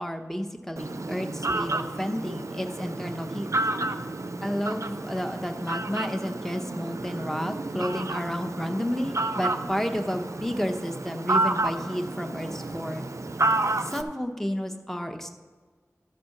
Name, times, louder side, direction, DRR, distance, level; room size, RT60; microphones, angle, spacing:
voice 1, 0.0-3.5 4.4-13.1 13.9-15.3, equal, 5° left, 5 dB, 0.9 m, -31 dB
Fowl, 0.8-14.0, right 2 dB, 60° right, 0.5 m, -30 dB
12.5 x 4.3 x 6.5 m, 1.5 s
wide cardioid pair, 50°, 6 cm